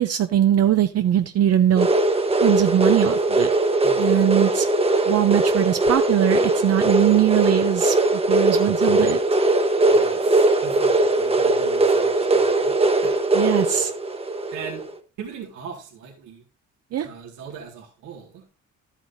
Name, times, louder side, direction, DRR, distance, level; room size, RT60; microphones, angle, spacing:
voice 1, 0.0-1.9 2.4-3.5 4.0-4.7 5.1-9.2 13.3-13.9 16.9-17.1, right 11 dB, 55° right, 8 dB, 0.6 m, -21 dB
sound 1, 1.8-14.9, right 2 dB, 20° right, 1.0 m, -20 dB
voice 2, 3.8-4.5 9.9-13.2 14.5-14.9 15.2-16.4 17.0-18.4, right 6 dB, 90° right, 0 dB, 2.0 m, -40 dB
11.5 x 8.2 x 2.7 m, 0.35 s
cardioid pair, 90°, 30 cm